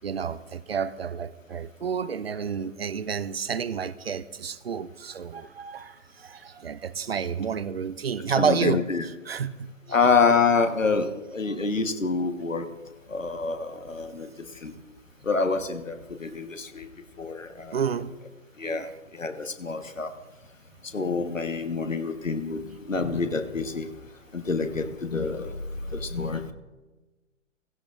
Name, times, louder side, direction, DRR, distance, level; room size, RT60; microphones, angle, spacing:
voice 1, 0.0-10.3 10.8-11.9 17.7-18.1 18.6-18.9, right 7 dB, 50° right, 0.5 m, -31 dB
voice 2, 8.3-9.0 9.9-12.7 13.1-14.7 15.2-16.9 17.2-17.8 18.6-20.1 20.9-23.9 24.3-25.5 25.9-26.5, left 4 dB, 75° left, 1.3 m, -27 dB
16.5 x 16.0 x 2.5 m
figure-of-eight pair, 130°, 39 cm